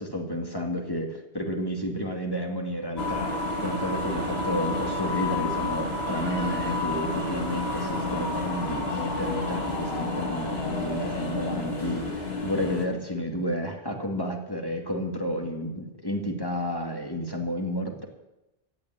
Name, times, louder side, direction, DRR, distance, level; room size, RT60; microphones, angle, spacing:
voice 1, 0.0-18.0, equal, 20° left, 2 dB, 2.2 m, -31 dB
sound 1, 3.0-12.9, left 2 dB, 85° left, 2.3 m, -30 dB
15.5 x 9.4 x 8.2 m, 0.95 s
omnidirectional pair, 1.0 m